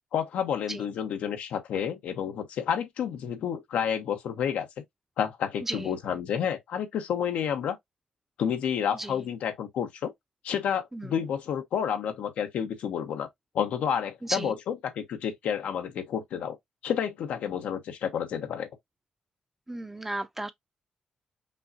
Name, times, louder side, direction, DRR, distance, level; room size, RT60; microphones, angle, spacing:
voice 1, 0.1-4.7 5.2-7.8 8.4-10.1 10.4-13.3 13.5-16.6 16.8-18.7, left 8 dB, 90° left, 0.9 m, -30 dB
voice 2, 5.6-6.0 8.9-9.2 10.9-11.2 14.2-14.5 19.7-20.5, right 1 dB, 10° right, 0.5 m, -35 dB
5.4 x 2.6 x 2.6 m
cardioid pair, 100°, 2 cm